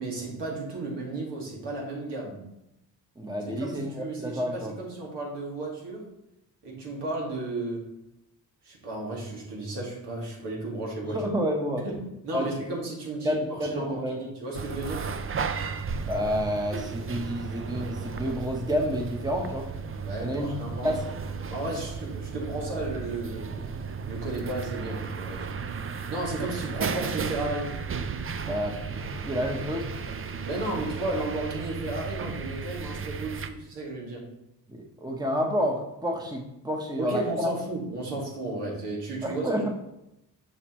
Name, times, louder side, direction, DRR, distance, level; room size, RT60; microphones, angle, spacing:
voice 1, 0.0-2.5 3.5-6.1 6.6-7.9 8.6-11.2 11.8-15.1 20.0-20.9 21.5-23.5 24.1-25.5 26.1-27.7 30.4-34.3 37.0-39.7, right 2 dB, 75° right, -3 dB, 2.2 m, -34 dB
voice 2, 3.2-4.7 11.0-11.9 12.3-12.5 13.2-14.2 16.0-19.7 20.2-20.5 20.8-21.0 28.4-29.9 34.7-37.5 39.2-39.7, equal, 10° right, 1 dB, 1.1 m, -29 dB
sound 1, 14.5-33.5, right 5 dB, 30° right, 0.5 m, -34 dB
6.7 x 5.1 x 3.1 m, 0.87 s
supercardioid pair, 60°, 42 cm